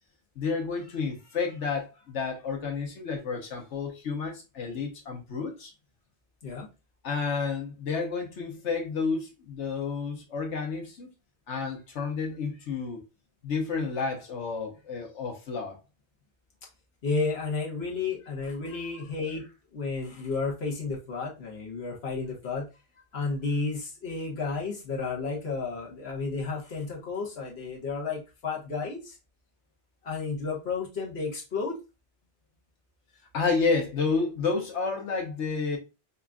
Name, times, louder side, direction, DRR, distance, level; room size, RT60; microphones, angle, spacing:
voice 1, 0.4-5.7 7.0-11.1 11.5-13.1 13.4-15.8 33.3-35.8, left 4 dB, 90° left, 1.3 m, -30 dB
voice 2, 17.0-19.4 19.7-22.7 23.1-29.2 30.0-31.7, left 4 dB, 65° left, 1.4 m, -32 dB
5.3 x 2.5 x 2.3 m
omnidirectional pair, 1.1 m